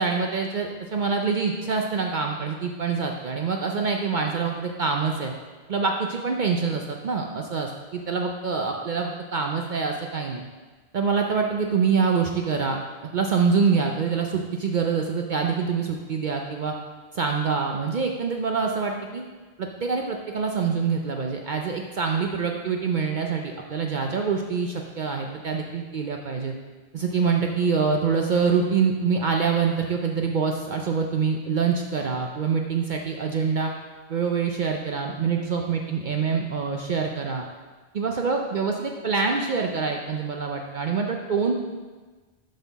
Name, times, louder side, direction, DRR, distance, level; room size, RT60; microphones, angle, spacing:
voice 1, 0.0-5.3 5.7-10.4 10.9-12.8 13.1-16.7 17.1-19.2 19.6-26.5 26.9-33.7 34.1-37.4 37.9-41.6, right 5 dB, 55° right, 2 dB, 0.6 m, -25 dB
11.5 x 4.1 x 4.0 m, 1.3 s
omnidirectional pair, 1.1 m